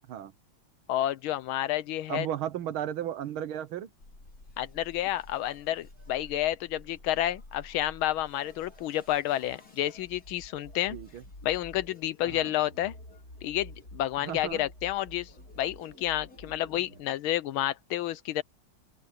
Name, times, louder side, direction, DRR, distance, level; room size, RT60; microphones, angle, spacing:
voice 1, 0.9-2.3 4.6-11.0 11.4-12.9 13.4-15.3 15.6-18.4, left 13 dB, 80° left, 1.6 m, -30 dB
voice 2, 2.1-3.9 10.9-11.2 12.2-12.5 14.2-14.7, right 10 dB, 85° right, 1.9 m, -35 dB
sound 1, 4.0-17.0, left 1 dB, 45° left, 5.1 m, -50 dB
open air
omnidirectional pair, 2.2 m